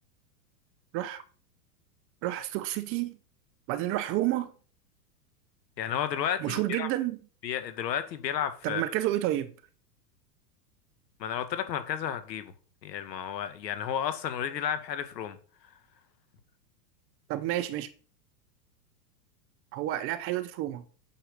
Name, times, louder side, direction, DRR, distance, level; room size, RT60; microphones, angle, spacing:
voice 1, 2.2-3.2 3.7-4.5 6.4-7.2 8.6-9.5 17.3-17.9 19.7-20.8, right 14 dB, 25° right, 0.8 m, -30 dB
voice 2, 5.8-6.9 7.4-8.8 11.2-12.5 12.8-15.4, left 9 dB, 80° left, 2.2 m, -32 dB
9.0 x 7.3 x 5.6 m
supercardioid pair, 155°, 49 cm